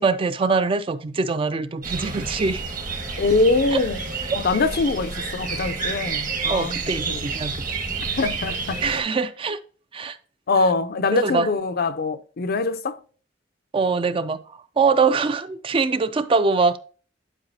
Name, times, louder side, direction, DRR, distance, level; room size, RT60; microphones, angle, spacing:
voice 1, 0.0-2.6 3.7-3.8 6.5-7.6 8.8-9.6 9.9-10.2 11.1-11.5 13.7-14.4 14.8-16.8, right 4 dB, 30° right, 0.3 m, -23 dB
sound 1, 1.8-9.0, right 4 dB, 45° right, 1.2 m, -30 dB
voice 2, 3.2-4.0 4.3-7.2 8.2-8.8 10.5-13.0, left 3 dB, 55° left, 0.5 m, -23 dB
11.0 x 4.7 x 2.7 m
head